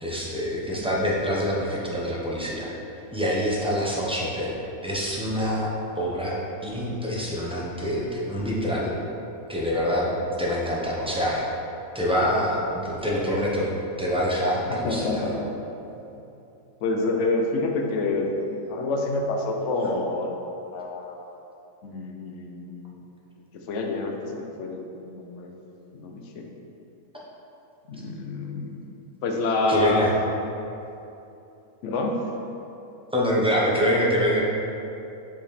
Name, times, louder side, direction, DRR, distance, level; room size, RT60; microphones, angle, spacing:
voice 1, 0.0-2.7 3.1-8.9 9.5-10.1 10.4-11.5 11.9-13.7 14.0-15.3 29.7-30.1 33.1-34.4, equal, 5° right, -5 dB, 0.8 m, -25 dB
voice 2, 14.7-15.5 16.8-20.4 20.7-21.2 21.8-23.0 23.7-25.5 25.9-26.5 27.9-28.9 29.2-30.4 31.8-32.2, left 2 dB, 60° left, 2 dB, 1.0 m, -28 dB
7.1 x 5.1 x 4.2 m, 2.8 s
omnidirectional pair, 1.6 m